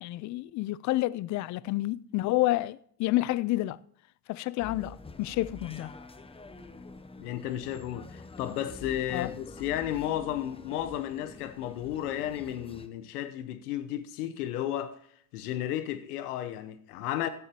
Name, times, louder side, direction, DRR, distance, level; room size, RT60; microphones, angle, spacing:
voice 1, 0.0-3.8 4.3-5.9 9.1-9.3, left 17 dB, 45° left, 0.4 m, -29 dB
sound 1, 4.6-12.9, left 2 dB, 10° left, 0.8 m, -47 dB
voice 2, 7.2-15.0 15.3-17.3, left 12 dB, 80° left, 1.0 m, -33 dB
15.5 x 10.5 x 2.9 m
hypercardioid pair, 75°, 45 cm